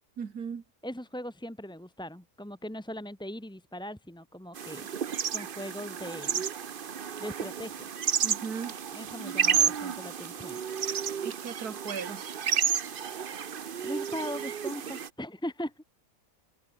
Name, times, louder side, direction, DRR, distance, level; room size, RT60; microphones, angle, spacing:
voice 1, 0.2-0.6 8.2-8.7 11.2-12.2, right 6 dB, 90° right, 2.3 m, -37 dB
voice 2, 0.8-4.9 5.3-6.4 7.2-7.9 8.9-10.6 13.8-15.8, equal, 5° left, 0.8 m, -39 dB
sound 1, 4.5-15.1, right 7 dB, 45° right, 0.9 m, -31 dB
omnidirectional pair, 1.6 m